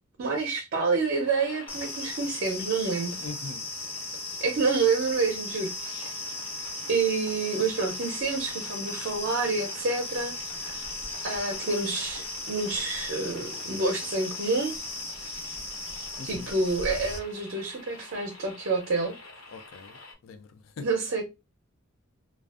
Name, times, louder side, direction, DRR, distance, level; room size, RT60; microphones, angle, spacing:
voice 1, 0.2-3.2 4.4-6.1 6.9-10.8 11.2-14.7 16.2-19.1 20.8-21.2, right 4 dB, 55° right, 0.5 m, -28 dB
sound 1, 0.9-20.1, left 2 dB, 85° left, 1.1 m, -47 dB
sound 2, 1.7-17.2, left 2 dB, 10° left, 0.5 m, -37 dB
voice 2, 3.2-3.7 16.2-16.5 19.5-20.0 20.2-20.9, left 4 dB, 70° left, 0.4 m, -41 dB
2.4 x 2.2 x 2.3 m
head